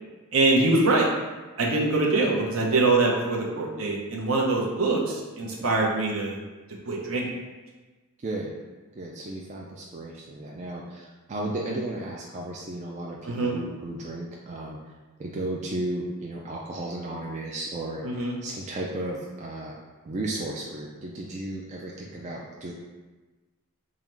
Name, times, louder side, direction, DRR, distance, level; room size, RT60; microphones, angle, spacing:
voice 1, 0.3-1.1 1.6-6.4 6.9-7.2 13.2-13.6 18.0-18.3, right 2 dB, 65° right, -2 dB, 0.7 m, -23 dB
voice 2, 5.4-5.8 8.2-8.6 9.0-14.8 15.2-19.8 20.0-22.7, right 1 dB, 30° right, -3 dB, 0.3 m, -34 dB
3.7 x 2.1 x 4.4 m, 1.2 s
head